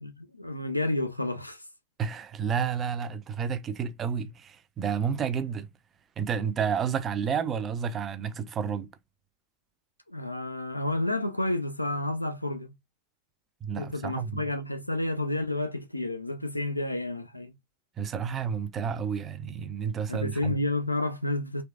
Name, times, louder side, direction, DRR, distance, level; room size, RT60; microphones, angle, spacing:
voice 1, 0.0-1.7 10.1-12.7 13.7-17.5 20.1-21.6, left 1 dB, 85° left, 0.6 m, -30 dB
voice 2, 2.0-5.7 6.2-8.9 13.6-14.4 18.0-20.5, right 7 dB, 25° right, 0.5 m, -30 dB
3.6 x 3.1 x 2.3 m
figure-of-eight pair, 90°, 0 cm